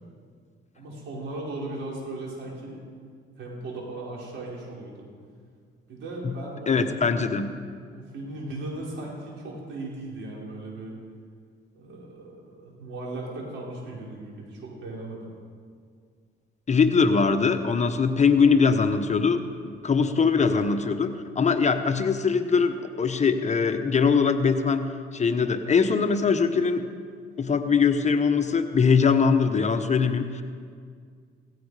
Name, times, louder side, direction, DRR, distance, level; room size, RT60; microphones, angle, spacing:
voice 1, 0.8-2.8 3.4-5.1 5.9-7.2 7.9-10.9 11.7-15.3 17.9-18.0 20.0-20.3, right 2 dB, 75° right, -3 dB, 4.9 m, -37 dB
voice 2, 6.7-7.5 16.7-26.8 27.4-30.4, left 5 dB, 35° left, 7 dB, 1.0 m, -22 dB
16.5 x 16.5 x 4.9 m, 2.1 s
cardioid pair, 90°, 20 cm